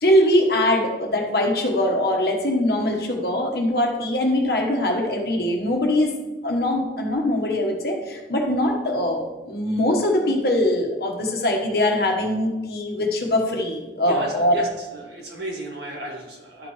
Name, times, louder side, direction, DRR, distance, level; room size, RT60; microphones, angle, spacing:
voice 1, 0.0-6.1 6.4-14.5, left 1 dB, 60° left, 1 dB, 1.3 m, -22 dB
voice 2, 14.1-16.7, right 1 dB, 70° right, -1 dB, 1.8 m, -34 dB
12.0 x 5.0 x 3.1 m, 1.1 s
head